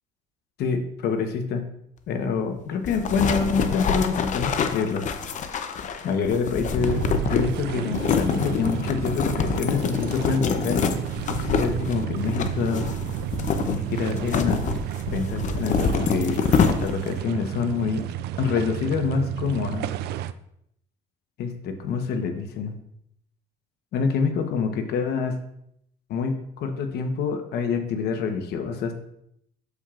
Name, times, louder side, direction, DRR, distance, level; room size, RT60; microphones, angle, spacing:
voice 1, 0.6-1.6 2.1-5.1 6.0-10.8 11.5-12.9 13.7-14.6 15.1-16.4 16.8-18.1 18.4-19.9 21.4-22.8 23.9-25.4 26.1-28.9, left 5 dB, 70° left, 6 dB, 1.0 m, -26 dB
sound 1, 2.8-17.2, left 6 dB, 45° left, 0.6 m, -26 dB
sound 2, 6.8-20.3, right 12 dB, 75° right, 0.4 m, -32 dB
8.0 x 7.2 x 2.5 m, 0.74 s
cardioid pair, 110°, 17 cm